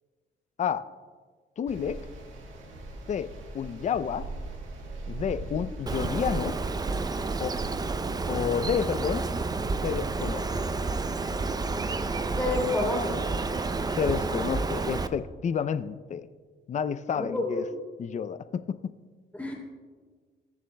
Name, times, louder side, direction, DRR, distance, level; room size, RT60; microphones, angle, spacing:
voice 1, 1.6-2.0 3.1-3.3 3.5-4.2 5.1-6.5 7.4-7.5 8.3-9.3 9.8-10.6 14.0-16.3 16.7-17.6 18.0-18.9, left 7 dB, 35° left, 13 dB, 0.4 m, -30 dB
sound 1, 1.7-7.7, right 2 dB, 80° right, 1.6 m, -40 dB
Bird, 5.9-15.1, right 3 dB, 20° right, 0.5 m, -30 dB
voice 2, 12.4-13.1 17.1-17.6 19.4-19.5, left 2 dB, 5° left, -1 dB, 3.0 m, -28 dB
20.5 x 7.2 x 2.2 m, 1.5 s
cardioid pair, 90°, 20 cm